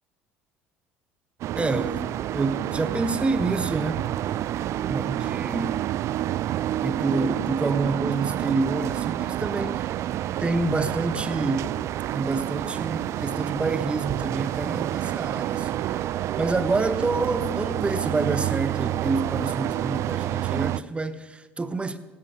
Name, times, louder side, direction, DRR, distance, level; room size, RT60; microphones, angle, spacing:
sound 1, 1.4-20.8, right 13 dB, 45° right, 0.3 m, -28 dB
voice 1, 1.5-4.0 4.9-5.8 6.8-9.8 10.4-11.8 12.1-22.0, right 3 dB, 15° right, 0.9 m, -28 dB
17.5 x 13.5 x 3.1 m
figure-of-eight pair, 60°, 7 cm